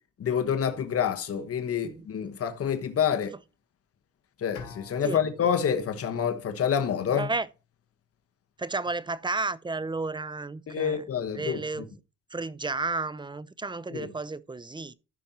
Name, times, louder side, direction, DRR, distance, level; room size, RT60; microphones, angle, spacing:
voice 1, 0.2-3.3 4.4-7.3 10.7-11.6 13.9-14.1, left 8 dB, 50° left, 1.3 m, -27 dB
Bowed string instrument, 4.5-7.6, left 7 dB, 80° left, 3.7 m, -49 dB
voice 2, 7.1-7.5 8.6-11.0 11.3-11.9 12.3-14.9, right 3 dB, 15° right, 0.6 m, -32 dB
14.5 x 5.3 x 2.9 m
cardioid pair, 90°, 30 cm